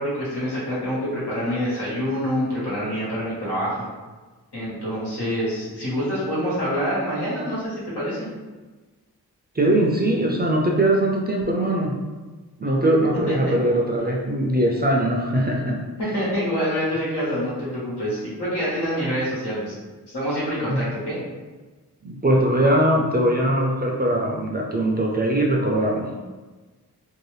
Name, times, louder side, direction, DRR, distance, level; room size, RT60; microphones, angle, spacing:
voice 1, 0.0-3.9 4.5-8.3 13.4-13.5 16.1-19.7 20.1-21.2, equal, 80° left, -8 dB, 1.3 m, -26 dB
voice 2, 9.5-11.9 12.6-15.8 20.7-20.8 22.0-26.3, right 1 dB, 25° right, -1 dB, 0.4 m, -21 dB
2.7 x 2.0 x 3.2 m, 1.3 s
wide cardioid pair, 55°, 40 cm